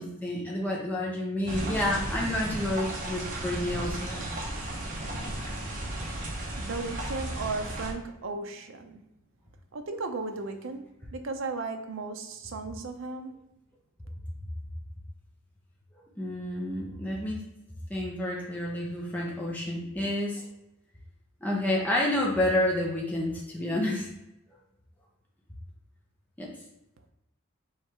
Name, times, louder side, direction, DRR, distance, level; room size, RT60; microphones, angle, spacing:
voice 1, 0.0-4.2 16.2-17.4 17.9-20.4 21.4-24.1 26.4-26.5, left 1 dB, 10° left, -4 dB, 0.7 m, -29 dB
sound 1, 1.5-7.9, right 1 dB, 40° right, 0.9 m, -34 dB
voice 2, 6.6-9.0 9.7-13.5, right 3 dB, 70° right, 7 dB, 0.5 m, -35 dB
3.4 x 3.2 x 4.5 m, 0.89 s
head